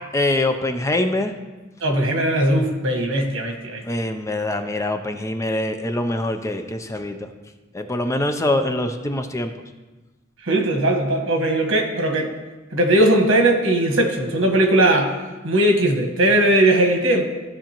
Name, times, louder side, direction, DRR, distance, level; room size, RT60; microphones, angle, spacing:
voice 1, 0.1-1.3 3.8-7.2 7.7-9.5, left 1 dB, 15° left, 7 dB, 0.5 m, -24 dB
voice 2, 1.8-3.8 10.4-12.3 12.7-15.1 15.4-17.3, right 1 dB, 85° right, 2 dB, 1.4 m, -19 dB
14.5 x 5.0 x 2.9 m, 1.2 s
head